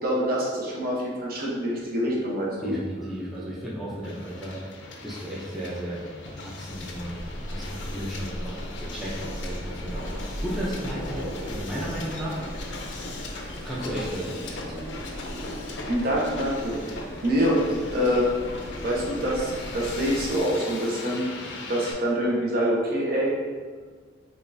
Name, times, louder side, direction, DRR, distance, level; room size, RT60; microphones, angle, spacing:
voice 1, 0.0-2.7 15.9-16.8 17.2-17.6 17.9-18.3 18.8-21.2 21.7-23.3, equal, 55° right, -4 dB, 0.9 m, -25 dB
voice 2, 2.6-10.1 10.4-12.7 13.6-14.9, equal, ahead, -7 dB, 0.5 m, -34 dB
Hiss, 4.0-21.9, left 2 dB, 75° left, 0.5 m, -39 dB
Wind, 6.7-20.4, equal, 80° right, 1.5 m, -38 dB
5.1 x 2.4 x 2.6 m, 1.5 s
head